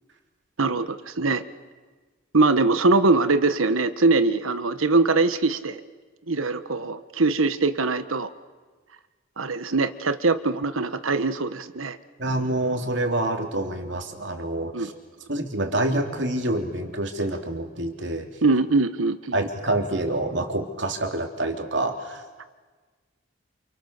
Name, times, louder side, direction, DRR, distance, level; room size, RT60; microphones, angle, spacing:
voice 1, 0.6-1.4 2.3-5.8 6.3-8.3 9.4-12.0 14.7-14.9 18.4-19.4 22.4-22.5, right 3 dB, 90° right, 12 dB, 1.3 m, -22 dB
voice 2, 12.2-14.9 15.3-18.3 19.3-22.5, right 1 dB, 60° right, 4 dB, 3.1 m, -27 dB
29.5 x 28.0 x 6.7 m, 1.4 s
head